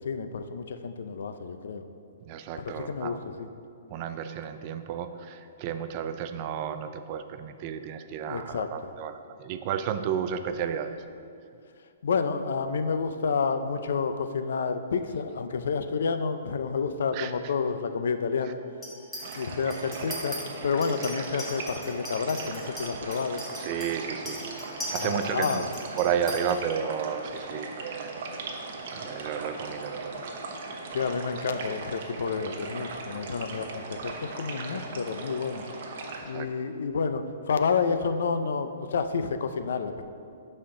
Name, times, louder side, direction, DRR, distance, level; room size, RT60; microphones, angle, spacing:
voice 1, 0.0-1.8 2.6-3.5 8.3-8.9 12.0-18.6 19.4-23.4 24.9-25.7 30.9-35.6 36.2-40.0, left 5 dB, 70° left, 9 dB, 0.5 m, -29 dB
voice 2, 2.3-3.2 3.9-11.0 17.1-17.3 19.2-19.4 23.7-24.4 24.9-25.6 26.0-28.3 28.9-30.3 36.2-36.5, right 8 dB, 30° right, 9 dB, 0.3 m, -32 dB
Chink clink, 18.8-19.4 19.7-20.4 20.8-26.5, equal, 10° left, 1.3 m, -39 dB
sound 1, 19.2-36.2, right 3 dB, 50° right, 0.9 m, -38 dB
11.5 x 4.3 x 3.8 m, 2.5 s
hypercardioid pair, 165°, 0 cm